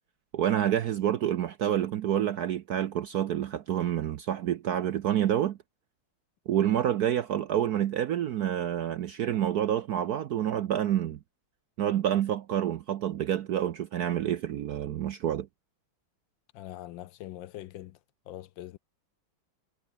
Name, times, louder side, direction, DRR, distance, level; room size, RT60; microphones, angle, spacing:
voice 1, 0.3-5.6 6.5-11.2 11.8-15.5, right 10 dB, 65° right, 0.9 m, -28 dB
voice 2, 16.5-18.0 18.3-18.8, left 14 dB, 75° left, 1.3 m, -42 dB
omnidirectional pair, 2.3 m